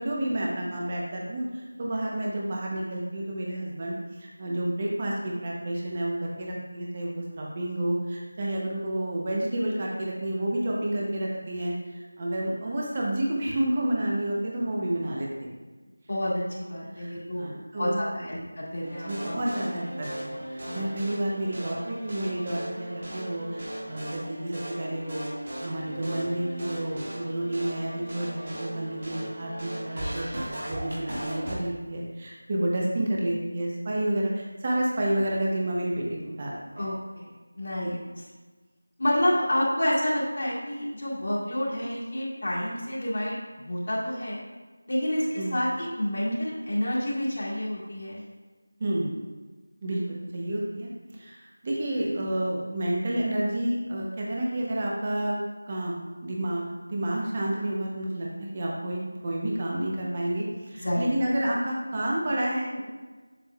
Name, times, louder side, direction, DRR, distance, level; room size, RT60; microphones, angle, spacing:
voice 1, 0.0-15.3 16.9-18.2 19.1-25.3 25.6-36.9 37.8-37.9 45.3-45.5 48.8-49.1 49.8-51.4 51.6-55.4 55.7-62.8, right 1 dB, 20° right, -3 dB, 0.8 m, -30 dB
voice 2, 16.1-17.4 17.7-19.4 19.6-19.7 20.6-20.9 36.8-37.3 37.6-38.0 39.0-44.4 44.9-48.2 60.8-61.0, equal, 50° left, -6 dB, 2.0 m, -29 dB
sound 1, 18.8-31.6, right 1 dB, 40° right, 1.5 m, -37 dB
7.5 x 7.3 x 2.4 m, 1.3 s
figure-of-eight pair, 175°, 0 cm